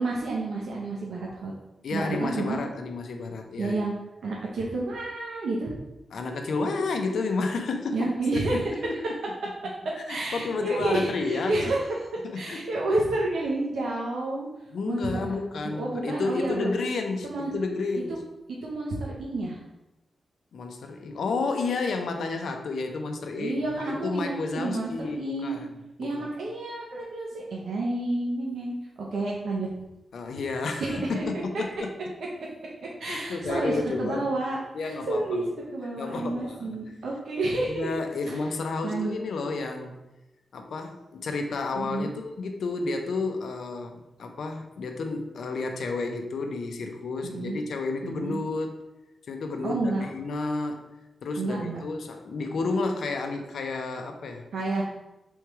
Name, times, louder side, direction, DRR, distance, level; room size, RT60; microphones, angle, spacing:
voice 1, 0.0-1.5 1.9-2.6 3.6-3.9 4.2-5.7 7.9-8.6 9.8-14.5 14.9-15.3 15.6-16.7 17.2-17.5 18.6-19.6 23.4-25.6 26.0-28.7 29.1-29.7 30.8-31.0 33.0-35.4 35.7-37.9 38.3-38.4 38.8-39.1 41.8-42.1 47.2-47.6 48.0-48.4 49.6-50.0 51.4-51.8 54.5-54.8, right 2 dB, 85° right, -3 dB, 0.7 m, -30 dB
voice 2, 1.8-3.8 6.1-9.0 10.0-11.7 12.2-12.7 14.7-18.2 20.5-25.7 26.0-26.3 30.1-31.9 33.1-34.2 34.7-35.5 36.0-36.8 37.7-40.0 40.5-48.7 49.3-50.8 51.2-54.5, left 3 dB, 75° left, 4 dB, 0.6 m, -31 dB
3.5 x 3.2 x 4.6 m, 0.94 s
wide cardioid pair, 145°, 0 cm